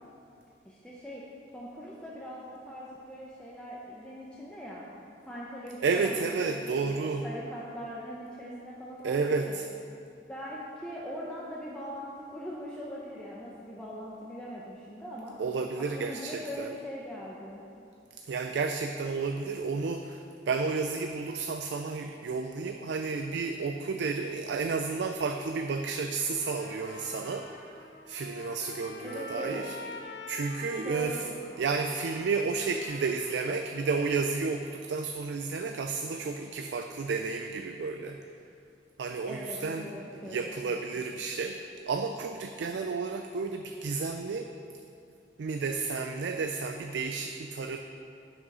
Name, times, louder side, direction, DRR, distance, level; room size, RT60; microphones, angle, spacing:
voice 1, 0.6-1.2 1.5-4.8 5.2-9.6 10.3-15.4 15.8-17.6 29.0-29.7 30.7-31.3 39.3-40.8, equal, 5° left, -6 dB, 0.7 m, -41 dB
voice 2, 5.8-7.3 9.0-9.7 15.4-16.7 18.3-27.5 28.1-29.8 30.3-31.2 31.6-38.2 39.0-39.9 40.2-44.5 45.4-47.8, right 4 dB, 75° right, 6 dB, 0.4 m, -31 dB
Trumpet, 26.2-34.2, left 2 dB, 75° left, 0.9 m, -46 dB
7.7 x 6.1 x 5.4 m, 2.5 s
head